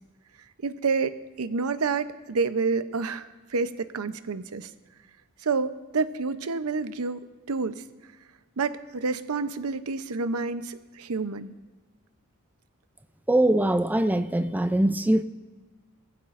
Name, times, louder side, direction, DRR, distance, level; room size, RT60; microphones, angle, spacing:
voice 1, 0.6-4.7 5.4-7.2 7.5-7.8 8.6-11.5, right 4 dB, 90° right, 12 dB, 0.7 m, -29 dB
voice 2, 13.3-15.2, right 1 dB, 10° right, 10 dB, 0.4 m, -22 dB
21.5 x 15.0 x 2.5 m, 1.3 s
head